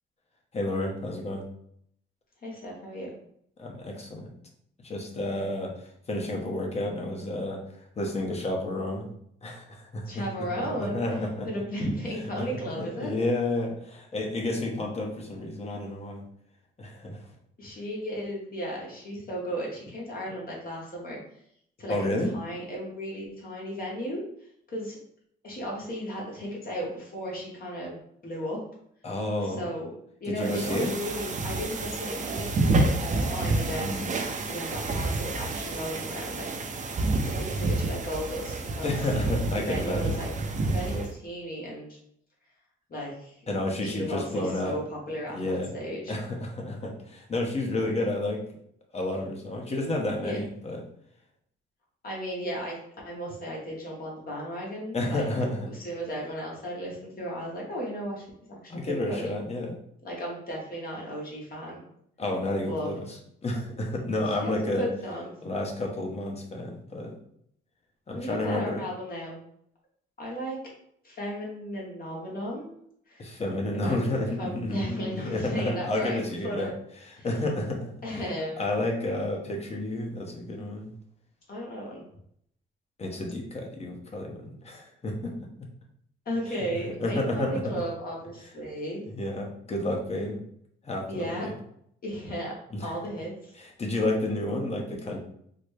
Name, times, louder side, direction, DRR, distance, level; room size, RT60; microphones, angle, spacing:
voice 1, 0.5-1.4 3.6-4.3 4.8-5.7 6.1-7.6 8.0-9.1 9.4-10.2 10.8-11.5 12.8-16.2 16.8-17.2 21.9-22.3 29.0-29.6 30.3-30.9 33.8-34.1 38.8-40.2 43.5-44.8 45.3-45.7 46.1-48.4 48.9-50.8 54.9-55.7 58.7-59.8 62.2-63.1 63.4-64.9 65.4-67.1 68.1-68.8 73.2-76.7 77.1-78.2 78.6-80.9 83.0-85.3 85.6-85.7 86.5-87.8 89.1-90.4 90.8-91.5 92.7-92.9 93.6-95.2, left 1 dB, 30° left, 1 dB, 0.9 m, -30 dB
voice 2, 2.4-3.1 10.1-11.0 11.4-13.2 17.6-21.2 21.8-22.0 22.3-24.2 24.7-25.0 25.4-28.0 28.2-28.6 29.4-29.9 30.2-32.9 33.2-34.0 34.5-36.5 37.3-38.9 39.6-40.3 40.7-42.0 42.9-43.4 43.8-46.1 50.2-50.4 52.0-52.8 53.0-55.3 55.7-59.2 60.0-61.8 62.7-62.9 64.4-65.3 68.1-69.4 70.2-70.6 71.0-72.7 73.1-73.4 73.7-76.7 77.2-77.3 78.0-78.7 81.5-82.0 86.2-89.0 91.1-91.5 92.0-92.5 92.8-93.5, equal, 45° left, -3 dB, 1.2 m, -35 dB
sound 1, 30.4-41.1, right 2 dB, 40° right, 0.6 m, -29 dB
4.0 x 2.1 x 3.3 m, 0.69 s
cardioid pair, 90°, 20 cm